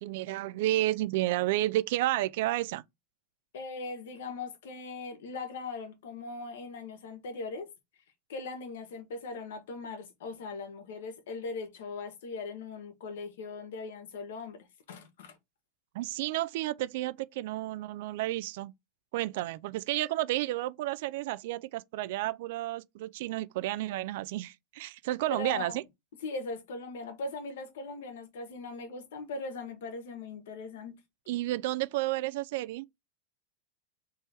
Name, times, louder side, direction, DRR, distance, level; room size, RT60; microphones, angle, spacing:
voice 1, 0.0-2.8 15.9-18.7 19.1-25.8 31.3-32.9, right 16 dB, 60° right, 0.3 m, -31 dB
voice 2, 3.5-7.7 8.3-15.4 25.3-25.8 26.2-31.0, left 3 dB, 80° left, 1.3 m, -40 dB
3.4 x 3.2 x 4.3 m
supercardioid pair, 160°, 0 cm